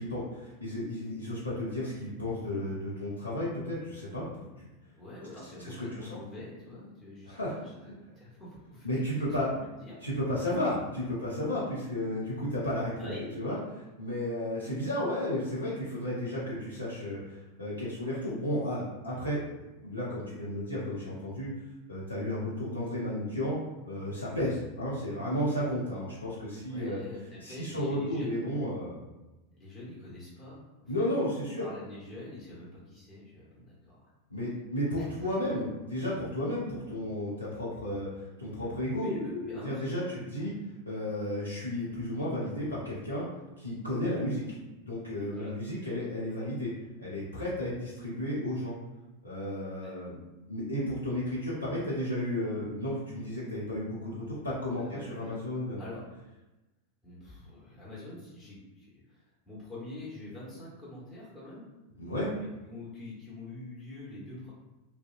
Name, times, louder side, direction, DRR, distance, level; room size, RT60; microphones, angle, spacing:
voice 1, 0.1-4.5 5.6-6.2 7.3-7.5 7.9-8.0 8.8-9.5 10.0-13.1 13.4-13.6 14.0-17.2 17.6-19.4 19.8-21.5 21.9-23.6 23.9-27.0 27.4-29.0 30.9-31.6 34.3-38.1 38.4-39.1 39.6-40.5 40.9-43.3 43.6-44.4 44.8-46.7 47.0-48.7 49.2-50.1 50.5-55.8 62.0-62.3, left 1 dB, 80° left, -7 dB, 0.6 m, -33 dB
voice 2, 5.0-10.0 13.0-13.3 22.4-22.5 26.7-28.3 29.5-30.9 31.6-34.0 35.0-35.1 39.0-40.5 45.3-45.5 45.8-46.1 49.8-49.9 54.8-55.4 55.8-56.0 57.0-61.7 62.3-64.5, left 2 dB, 25° left, -8 dB, 1.3 m, -45 dB
2.6 x 2.1 x 2.5 m, 1.0 s
figure-of-eight pair, 90°, 0 cm